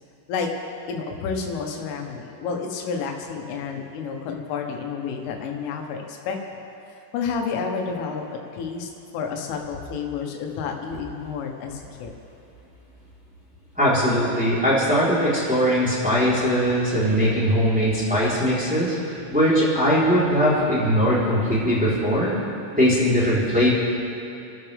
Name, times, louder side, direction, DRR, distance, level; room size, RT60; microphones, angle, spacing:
voice 1, 0.9-6.4 7.1-8.2 8.5-12.1, left 5 dB, 90° left, 1 dB, 3.8 m, -30 dB
voice 2, 13.8-22.3 22.8-23.7, equal, ahead, -9 dB, 2.8 m, -20 dB
29.0 x 12.0 x 3.5 m, 2.8 s
omnidirectional pair, 5.5 m